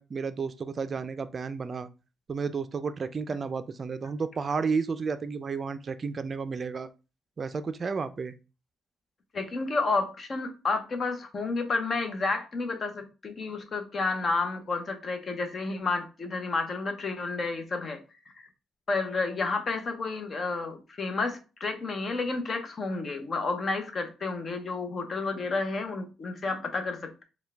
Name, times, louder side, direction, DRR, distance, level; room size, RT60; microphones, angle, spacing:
voice 1, 0.0-1.9 2.3-6.9 7.4-8.3, right 5 dB, 40° right, 11 dB, 0.4 m, -32 dB
voice 2, 9.3-18.0 18.4-18.5 18.9-27.2, left 3 dB, 45° left, 6 dB, 0.8 m, -31 dB
4.4 x 2.3 x 3.3 m, 0.32 s
cardioid pair, 90°, 0 cm